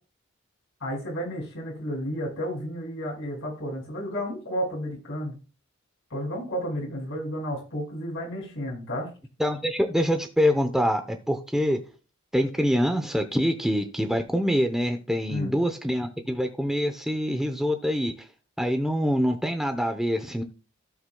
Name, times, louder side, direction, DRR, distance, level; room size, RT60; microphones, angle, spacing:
voice 1, 0.8-5.3 6.1-9.1 15.3-15.5, equal, 65° left, -2 dB, 5.2 m, -32 dB
voice 2, 9.4-11.8 12.3-18.1 18.6-20.4, equal, ahead, 5 dB, 0.7 m, -25 dB
16.5 x 5.7 x 2.3 m, 0.35 s
head